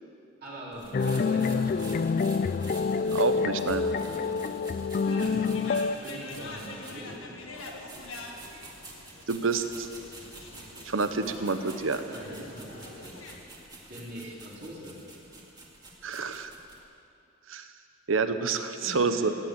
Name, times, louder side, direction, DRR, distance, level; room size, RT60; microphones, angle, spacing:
voice 1, 0.4-2.0 4.0-5.5 6.0-7.6 12.1-13.2 13.9-14.9 18.8-19.3, right 1 dB, 50° right, -7 dB, 4.2 m, -42 dB
sound 1, 0.7-7.2 7.5-16.8, right 2 dB, 20° right, 2.2 m, -48 dB
sound 2, 0.9-6.0, left 4 dB, 45° left, 0.3 m, -27 dB
voice 2, 3.1-3.9 9.3-9.9 10.8-12.0 16.0-16.5 17.5-17.7 18.1-19.3, right 4 dB, 75° right, 9 dB, 0.9 m, -28 dB
sound 3, 5.0-13.4, left 2 dB, 90° left, 1.7 m, -45 dB
18.0 x 8.7 x 8.2 m, 2.7 s
head